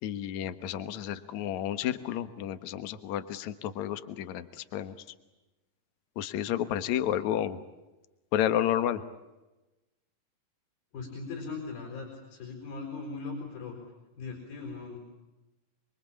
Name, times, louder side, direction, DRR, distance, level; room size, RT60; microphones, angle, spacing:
voice 1, 0.0-4.9 6.2-7.6 8.3-9.0, left 11 dB, 60° left, 11 dB, 2.3 m, -31 dB
voice 2, 10.9-13.8 14.2-15.1, left 4 dB, 85° left, 1 dB, 6.7 m, -39 dB
28.0 x 23.5 x 8.6 m, 1.0 s
omnidirectional pair, 4.2 m